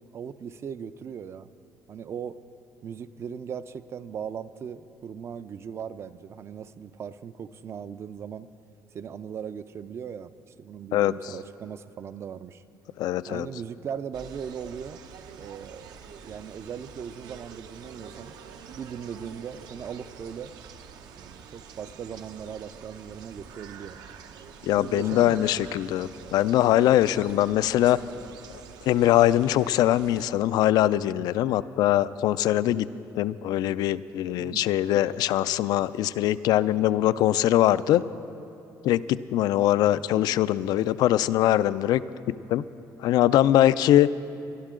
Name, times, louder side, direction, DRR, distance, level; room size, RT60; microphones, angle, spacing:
voice 1, 0.0-1.5 1.9-2.4 2.8-8.5 8.9-10.3 10.6-12.6 13.3-15.0 15.4-15.9 16.2-18.4 18.8-20.5 21.2-24.0 24.7-25.7 34.4-34.7, right 7 dB, 40° right, 14 dB, 0.4 m, -38 dB
voice 2, 13.0-13.5 24.6-28.0 28.8-32.9 33.1-38.0 38.8-42.0 42.3-42.6 43.0-44.1, left 13 dB, 75° left, 16 dB, 0.3 m, -22 dB
sound 1, 14.1-30.2, right 7 dB, 75° right, 0.8 m, -46 dB
23.5 x 11.5 x 3.7 m, 2.7 s
cardioid pair, 140°, 7 cm